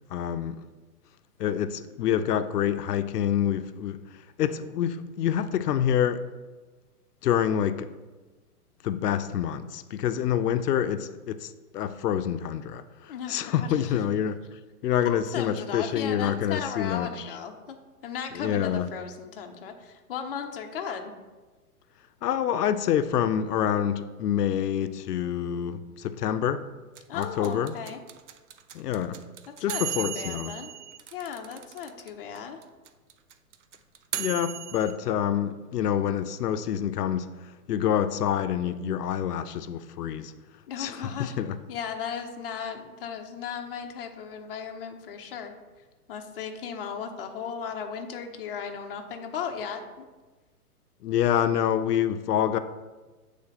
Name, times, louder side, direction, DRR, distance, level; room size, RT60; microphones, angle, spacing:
voice 1, 0.1-0.7 1.4-4.0 4.4-6.2 7.2-7.9 8.8-14.4 14.8-17.1 18.4-18.9 22.2-26.7 27.1-27.7 28.7-29.2 29.6-30.5 34.2-37.4 37.7-40.3 40.8-41.6 51.0-52.6, left 9 dB, 85° left, 0.5 m, -27 dB
voice 2, 13.1-14.0 15.3-17.8 18.0-21.1 27.1-28.0 29.7-30.7 31.1-32.6 40.7-41.4 41.7-45.5 46.1-50.1, left 7 dB, 40° left, 0.5 m, -36 dB
sound 1, 27.0-32.1 32.4-32.5 32.6-34.9, right 11 dB, 55° right, 0.5 m, -35 dB
7.6 x 3.3 x 4.0 m
hypercardioid pair, 150°, 46 cm